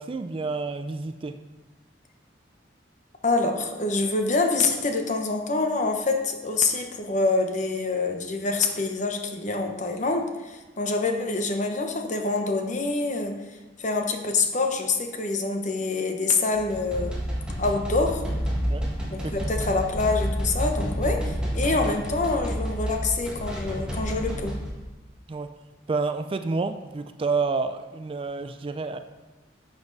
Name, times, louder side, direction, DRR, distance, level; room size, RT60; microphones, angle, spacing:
voice 1, 0.0-1.4 18.7-18.9 25.3-25.5 25.9-29.0, right 4 dB, 30° right, 9 dB, 0.4 m, -29 dB
voice 2, 3.2-13.4 13.8-17.1 17.6-18.2 19.1-24.5, left 3 dB, 40° left, 4 dB, 1.0 m, -26 dB
sound 1, 16.6-24.7, equal, 5° right, 1.9 m, -29 dB
11.0 x 7.0 x 4.0 m, 1.1 s
head